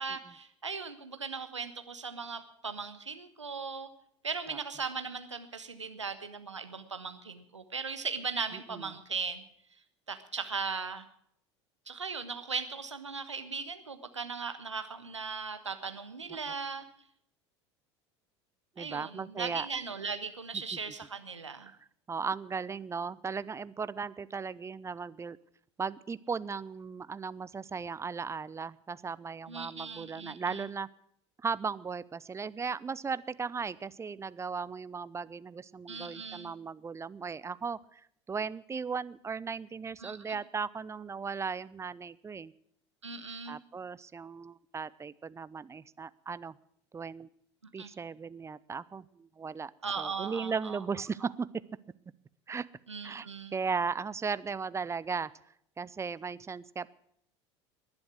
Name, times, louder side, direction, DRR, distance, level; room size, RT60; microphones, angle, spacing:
voice 1, 0.0-3.9 4.2-9.4 10.1-11.0 11.9-16.8 18.8-21.7 29.5-30.6 35.9-36.5 40.0-40.4 43.0-43.6 47.8-47.9 49.8-50.8 52.9-53.6, right 5 dB, 85° right, 9 dB, 1.4 m, -38 dB
voice 2, 18.8-19.7 21.6-21.8 22.1-25.4 25.8-30.9 31.4-38.0 38.3-42.5 43.5-46.5 46.9-47.3 47.7-49.7 50.0-51.5 52.5-52.7 53.0-55.3 55.8-56.9, right 5 dB, 20° right, 18 dB, 0.6 m, -37 dB
19.5 x 10.5 x 6.1 m, 0.67 s
figure-of-eight pair, 70°, 15 cm